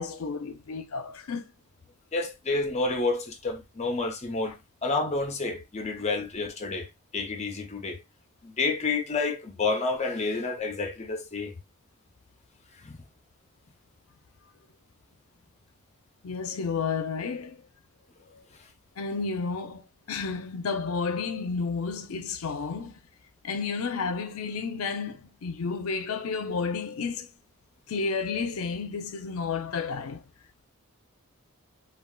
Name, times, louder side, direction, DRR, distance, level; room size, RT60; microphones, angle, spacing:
voice 1, 0.0-1.5 16.2-17.6 18.3-18.4 19.0-23.0 23.4-27.3 27.9-30.2, left 5 dB, 85° left, 0.5 m, -31 dB
voice 2, 2.1-8.0 8.4-11.5 12.8-13.0, left 3 dB, 30° left, 0.6 m, -29 dB
3.7 x 2.3 x 2.2 m
head